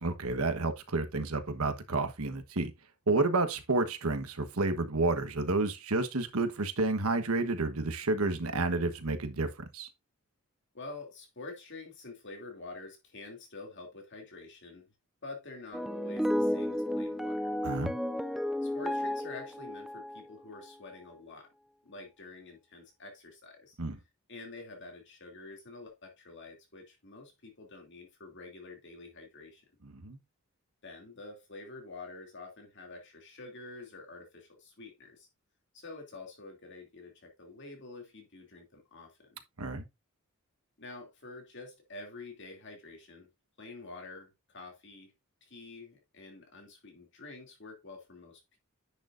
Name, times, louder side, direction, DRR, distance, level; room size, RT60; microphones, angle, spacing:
voice 1, 0.0-2.7 3.1-9.9 17.6-18.0 23.8-24.0 30.0-30.2 39.6-39.9, right 3 dB, 75° right, 1.2 m, -30 dB
voice 2, 10.7-14.9 15.2-17.5 18.6-21.5 21.8-23.8 24.3-29.7 30.8-35.3 35.7-39.4 40.8-43.3 43.6-45.1 45.4-48.6, left 3 dB, 55° left, 2.7 m, -47 dB
sound 1, 15.7-20.7, left 1 dB, ahead, 0.4 m, -33 dB
10.5 x 6.5 x 2.6 m
head